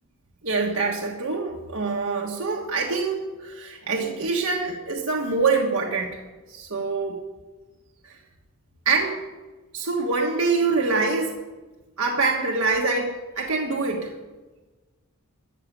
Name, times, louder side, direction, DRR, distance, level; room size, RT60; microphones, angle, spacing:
voice 1, 0.4-6.2 6.5-7.2 8.0-8.1 8.8-9.2 9.7-11.4 12.0-14.1, right 4 dB, 70° right, -1 dB, 1.5 m, -25 dB
14.5 x 6.7 x 9.0 m, 1.2 s
head